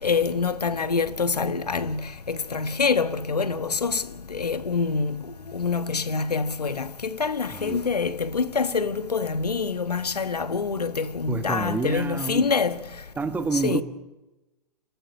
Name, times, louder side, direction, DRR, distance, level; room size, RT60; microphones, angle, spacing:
voice 1, 0.0-12.8 13.5-13.8, left 5 dB, 75° left, 1.4 m, -26 dB
voice 2, 11.3-12.4 13.2-13.8, right 4 dB, 10° right, 1.4 m, -28 dB
27.0 x 15.5 x 9.5 m
figure-of-eight pair, 115°, 20 cm